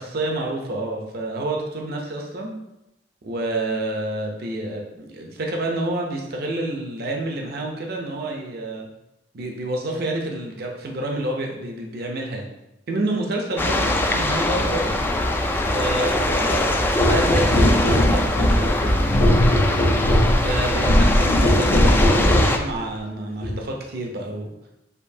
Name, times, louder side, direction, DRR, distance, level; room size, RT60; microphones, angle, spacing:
voice 1, 0.0-2.5 3.2-8.9 9.3-12.5 12.9-15.0 15.7-19.0 20.4-24.5, right 1 dB, 55° right, 1 dB, 0.7 m, -28 dB
sound 1, 13.6-22.6, left 1 dB, 10° left, 0.3 m, -22 dB
sound 2, 17.0-22.6 23.4-23.6, left 1 dB, 50° left, 0.7 m, -19 dB
6.6 x 2.7 x 2.7 m, 0.91 s
head